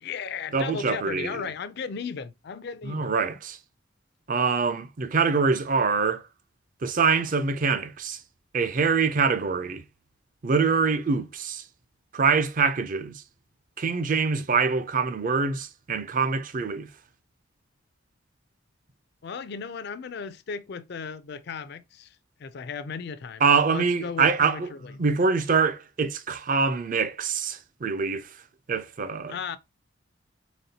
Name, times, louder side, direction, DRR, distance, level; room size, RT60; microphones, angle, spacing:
voice 1, 0.0-3.1 19.2-23.4 23.7-24.9 29.3-29.6, left 6 dB, 55° left, 0.4 m, -35 dB
voice 2, 0.5-1.5 2.8-3.6 4.3-6.2 6.8-8.2 8.5-9.8 10.4-11.6 12.1-13.2 13.8-16.9 23.4-24.7 25.0-28.4 28.7-29.4, right 5 dB, 40° right, 0.4 m, -24 dB
4.1 x 3.5 x 2.7 m
head